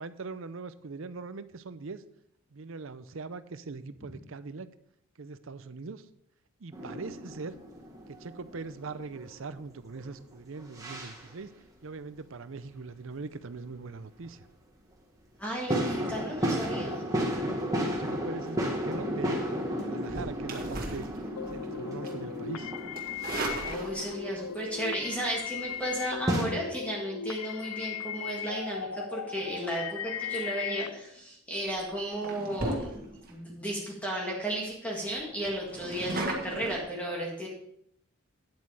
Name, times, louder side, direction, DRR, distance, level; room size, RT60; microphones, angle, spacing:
voice 1, 0.0-2.0 2.5-4.7 5.2-6.1 6.6-7.5 8.1-11.5 11.8-14.5 17.9-19.4 19.7-21.1 21.5-22.7, right 4 dB, 65° right, 14 dB, 0.6 m, -41 dB
sound 1, 6.7-10.2 10.6-11.3 14.2-14.3 15.7-26.4, equal, 15° right, 1.7 m, -34 dB
voice 2, 15.4-17.1 23.7-37.5, right 1 dB, 5° left, -3 dB, 1.8 m, -34 dB
sound 2, 20.0-21.7 22.0-22.3 22.9-24.3 25.6-25.9 30.9-31.2 31.7-31.8 32.2-33.3 33.8-33.9 34.2-34.3 34.6-34.7 35.1-36.8, right 2 dB, 40° right, 1.8 m, -36 dB
sound 3, 21.4-30.9, left 8 dB, 85° left, 0.4 m, -38 dB
9.7 x 8.3 x 4.8 m, 0.74 s
head